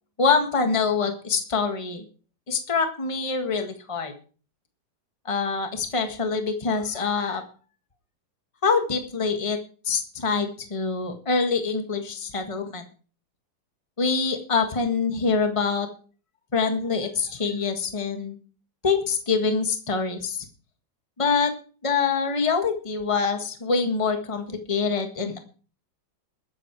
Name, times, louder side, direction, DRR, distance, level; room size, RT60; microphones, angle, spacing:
voice 1, 0.2-2.0 2.5-4.1 5.2-7.4 8.6-9.6 9.8-12.8 14.0-15.9 16.5-18.4 18.8-20.5 21.2-21.5 21.8-25.4, left 5 dB, 20° left, 6 dB, 1.5 m, -25 dB
21.0 x 7.7 x 4.7 m, 0.39 s
omnidirectional pair, 2.0 m